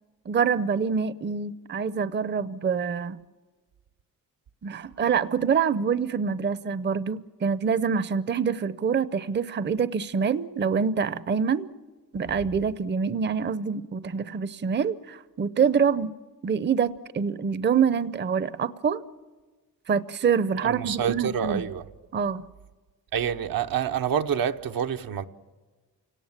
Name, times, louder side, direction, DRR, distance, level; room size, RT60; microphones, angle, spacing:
voice 1, 0.3-3.2 4.6-11.7 12.1-16.1 16.4-19.0 19.9-21.7 22.1-22.4, right 6 dB, 30° right, 0.6 m, -26 dB
voice 2, 20.6-21.8 23.1-25.3, right 8 dB, 85° right, 1.0 m, -27 dB
29.0 x 18.0 x 7.4 m
wide cardioid pair, 125°, 34 cm